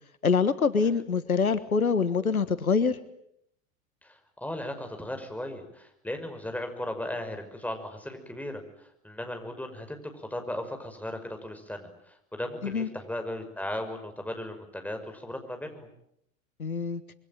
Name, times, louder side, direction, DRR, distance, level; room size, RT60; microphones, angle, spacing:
voice 1, 0.2-3.0 12.6-12.9 16.6-17.0, left 5 dB, 90° left, 15 dB, 1.5 m, -25 dB
voice 2, 4.0-8.6 9.0-15.9, left 1 dB, 5° left, 6 dB, 5.9 m, -36 dB
26.0 x 24.0 x 9.2 m, 0.75 s
figure-of-eight pair, 85°, 42 cm